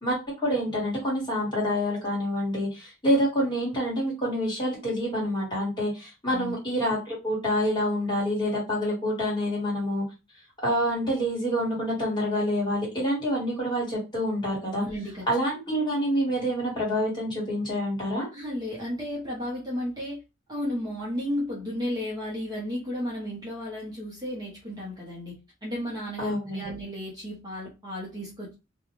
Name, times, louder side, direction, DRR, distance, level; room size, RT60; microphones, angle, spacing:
voice 1, 0.0-10.0 10.6-14.8 15.3-18.3 26.2-26.6, equal, 20° left, -5 dB, 1.4 m, -27 dB
voice 2, 14.8-15.2 18.3-20.2 20.5-28.5, left 1 dB, 20° right, -4 dB, 0.7 m, -33 dB
2.4 x 2.2 x 2.9 m, 0.27 s
head